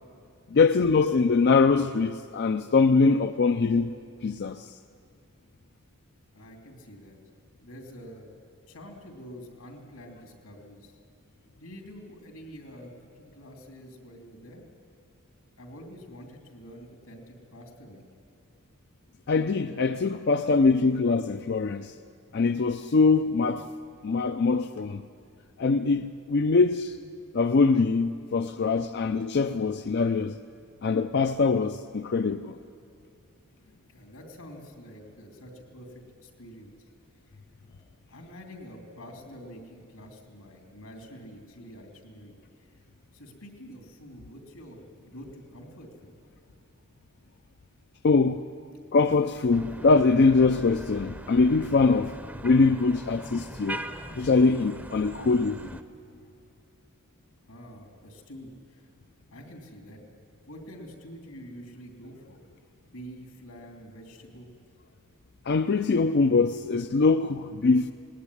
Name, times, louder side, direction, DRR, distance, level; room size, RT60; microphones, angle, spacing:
voice 1, 0.5-3.9 4.2-4.7 19.3-21.9 22.3-23.7 24.0-25.0 25.6-27.0 27.3-30.4 30.8-32.6 48.0-48.4 48.9-52.1 52.4-53.8 54.2-55.8 65.5-67.9, left 4 dB, 50° left, 0.4 m, -23 dB
voice 2, 6.3-7.2 7.6-8.3 8.7-11.0 11.6-12.9 13.2-14.6 15.6-18.0 33.9-36.7 37.6-37.8 38.1-42.7 43.1-46.1 57.5-58.9 59.3-60.0 60.5-62.4 62.9-64.5, equal, 80° left, 3.0 m, -47 dB
sound 1, 49.5-55.8, right 1 dB, 10° right, 0.7 m, -41 dB
19.0 x 18.0 x 9.8 m
head